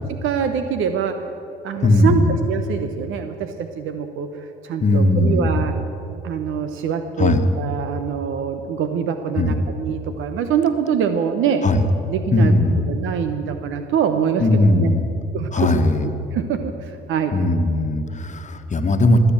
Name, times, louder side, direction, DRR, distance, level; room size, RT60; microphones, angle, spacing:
voice 1, 0.1-1.2 1.6-4.3 4.6-5.7 6.2-11.6 12.1-12.5 12.9-14.5 14.7-14.9 15.3-17.3, right 7 dB, 70° right, 8 dB, 0.9 m, -24 dB
voice 2, 1.8-2.4 4.8-5.7 7.2-7.4 9.4-9.7 11.6-11.9 12.3-12.8 14.4-15.1 15.5-16.1 17.3-19.2, left 2 dB, 35° left, 7 dB, 1.4 m, -18 dB
20.5 x 8.0 x 7.4 m, 2.7 s
supercardioid pair, 65°, 21 cm